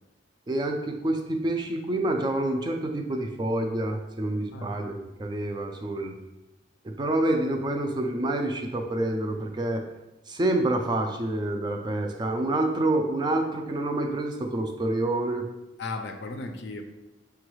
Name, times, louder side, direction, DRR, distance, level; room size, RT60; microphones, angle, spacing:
voice 1, 0.5-6.1 7.0-9.8 10.3-15.5, right 1 dB, 20° right, 3 dB, 0.3 m, -27 dB
voice 2, 15.8-16.8, left 3 dB, 60° left, 6 dB, 0.4 m, -35 dB
5.9 x 2.3 x 3.1 m, 0.99 s
head